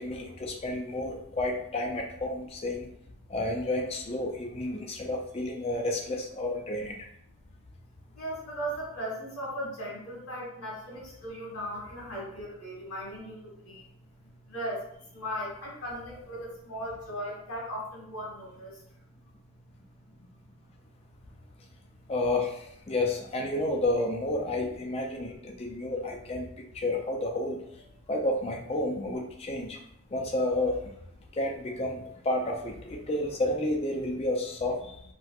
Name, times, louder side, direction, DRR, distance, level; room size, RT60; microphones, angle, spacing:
voice 1, 0.0-2.9 3.3-7.0 22.1-27.6 28.1-29.8 30.1-30.9 31.3-34.9, left 1 dB, 25° left, 1 dB, 0.4 m, -31 dB
voice 2, 8.1-13.9 14.5-18.8, equal, 75° left, -3 dB, 1.3 m, -37 dB
4.3 x 2.1 x 2.4 m, 0.70 s
head